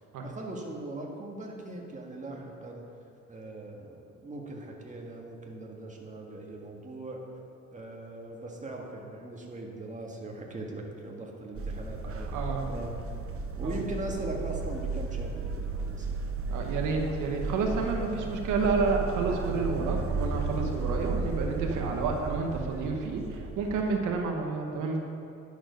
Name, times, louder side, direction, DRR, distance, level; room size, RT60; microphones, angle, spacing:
voice 1, 0.2-2.9 3.3-7.2 7.7-12.9 13.6-16.2, right 2 dB, 25° right, 0 dB, 1.7 m, -40 dB
sound 1, 11.5-24.1, right 4 dB, 45° right, 0.9 m, -34 dB
voice 2, 12.3-12.7 13.6-13.8 16.5-25.0, right 4 dB, 85° right, 2 dB, 1.0 m, -30 dB
10.5 x 7.0 x 5.2 m, 2.6 s
cardioid pair, 90°, 30 cm